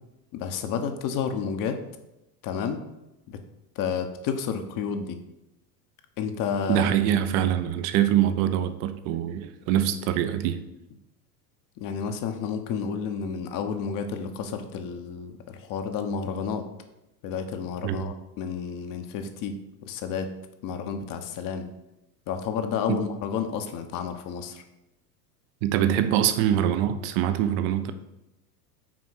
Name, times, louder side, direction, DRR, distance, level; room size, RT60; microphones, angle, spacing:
voice 1, 0.3-1.8 2.4-2.8 3.3-3.4 3.8-5.2 6.2-6.9 11.8-16.7 17.2-20.4 20.6-21.7 22.3-24.6, left 6 dB, 40° left, 1.0 m, -31 dB
voice 2, 6.7-10.6 17.8-18.0 22.9-23.0 25.6-27.9, right 10 dB, 50° right, 0.8 m, -24 dB
6.2 x 4.3 x 5.8 m
hypercardioid pair, 90°, 49 cm